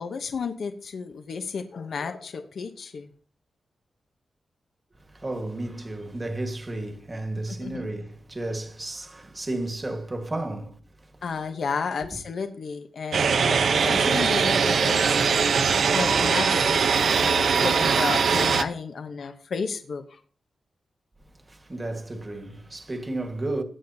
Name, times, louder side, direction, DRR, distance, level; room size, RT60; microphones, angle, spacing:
voice 1, 0.0-3.1 7.6-7.8 11.2-15.4 15.9-20.2, left 5 dB, 60° left, 0.9 m, -32 dB
voice 2, 5.0-11.2 12.0-12.1 21.4-23.6, right 2 dB, 20° right, 1.5 m, -33 dB
sound 1, 13.1-18.6, right 5 dB, 70° right, 0.7 m, -21 dB
17.5 x 9.6 x 2.8 m
wide cardioid pair, 175°, 0 cm